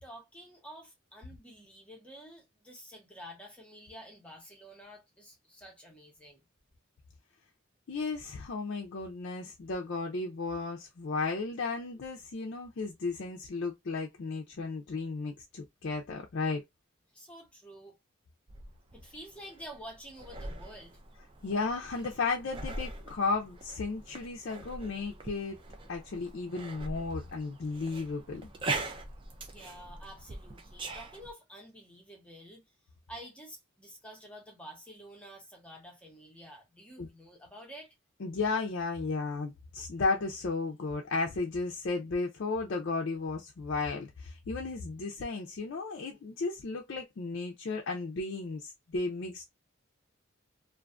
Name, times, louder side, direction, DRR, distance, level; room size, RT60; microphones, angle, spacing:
voice 1, 0.0-6.4 17.1-17.9 18.9-21.0 29.5-32.6 33.1-37.9, equal, 5° left, 0.7 m, -49 dB
voice 2, 7.9-16.6 21.4-25.6 25.9-28.4 37.0-37.1 38.2-49.5, left 3 dB, 55° left, 0.4 m, -34 dB
sound 1, 18.5-31.3, right 2 dB, 25° right, 0.3 m, -42 dB
2.5 x 2.3 x 2.3 m
head